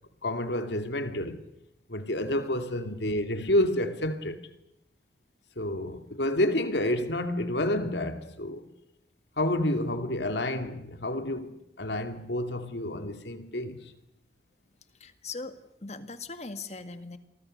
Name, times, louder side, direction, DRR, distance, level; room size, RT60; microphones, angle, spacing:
voice 1, 0.2-1.4 1.9-4.5 5.6-8.7 9.4-13.9, left 1 dB, 80° left, 2.6 m, -29 dB
voice 2, 15.0-17.2, left 3 dB, 40° left, 1.9 m, -40 dB
29.0 x 23.5 x 6.6 m
head